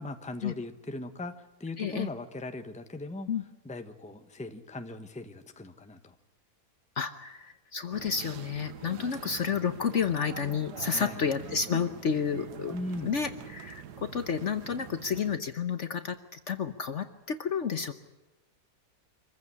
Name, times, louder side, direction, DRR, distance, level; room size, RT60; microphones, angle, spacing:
voice 1, 0.0-3.3 3.6-6.1 8.8-9.2 10.9-11.2 12.7-13.1, left 2 dB, 5° left, 8 dB, 1.0 m, -39 dB
voice 2, 1.8-2.1 3.3-3.4 7.0-12.7 13.0-17.9, left 6 dB, 50° left, 10 dB, 1.1 m, -31 dB
sound 1, 7.9-15.4, right 8 dB, 75° right, 1.5 m, -44 dB
25.5 x 15.0 x 9.7 m, 1.1 s
omnidirectional pair, 1.8 m